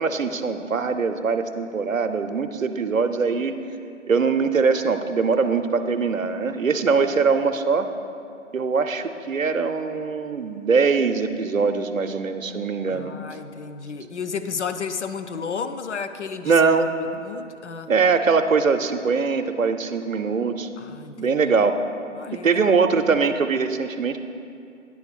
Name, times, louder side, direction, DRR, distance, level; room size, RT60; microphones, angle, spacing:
voice 1, 0.0-3.6 4.1-7.9 8.5-13.1 16.4-16.9 17.9-20.7 21.2-21.8 22.4-24.2, right 5 dB, 85° right, 8 dB, 0.6 m, -22 dB
voice 2, 12.9-16.6 17.0-17.9 20.8-21.5 22.2-22.8, left 6 dB, 65° left, 9 dB, 0.5 m, -33 dB
9.7 x 3.6 x 5.7 m, 2.5 s
figure-of-eight pair, 135°, 39 cm